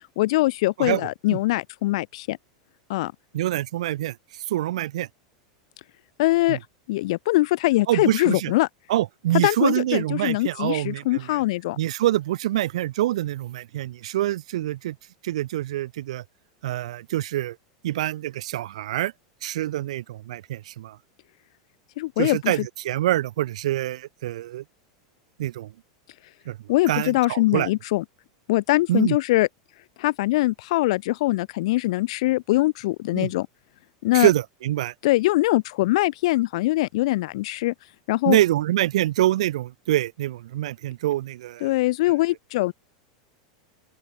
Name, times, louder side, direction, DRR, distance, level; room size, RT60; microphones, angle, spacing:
voice 1, 0.2-2.4 2.9-3.1 6.2-6.6 6.9-8.7 9.4-11.8 22.0-22.7 26.7-28.0 28.5-29.5 30.0-33.5 34.0-34.3 35.0-37.7 38.1-38.4 41.6-42.7, left 18 dB, 70° left, 0.6 m, -22 dB
voice 2, 3.3-5.1 6.5-6.6 7.9-8.5 8.9-11.4 11.8-15.0 15.2-16.2 16.6-17.6 17.8-19.1 19.4-21.0 22.2-24.6 25.4-25.7 26.5-26.6 26.9-27.7 28.9-29.2 33.1-33.3 34.1-34.9 38.2-41.7, right 14 dB, 80° right, 0.9 m, -25 dB
open air
supercardioid pair, 130°, 3 cm